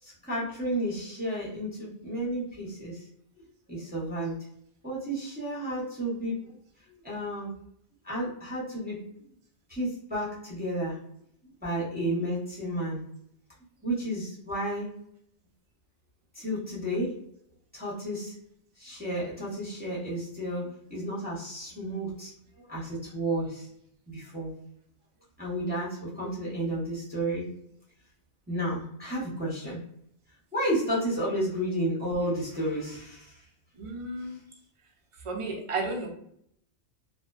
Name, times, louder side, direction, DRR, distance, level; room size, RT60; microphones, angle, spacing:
voice 1, 0.0-3.0 3.7-4.4 4.8-6.4 7.0-7.5 8.0-9.0 9.7-11.0 11.6-13.0 13.8-14.9 16.3-17.2 17.7-18.3 18.8-22.3 22.6-23.7 24.1-24.5 25.4-27.5 28.5-29.8 30.5-33.4, right 1 dB, 10° right, -7 dB, 0.7 m, -32 dB
voice 2, 33.8-34.4 35.2-36.1, right 3 dB, 55° right, 0 dB, 0.3 m, -32 dB
2.5 x 2.1 x 2.3 m, 0.69 s
omnidirectional pair, 1.2 m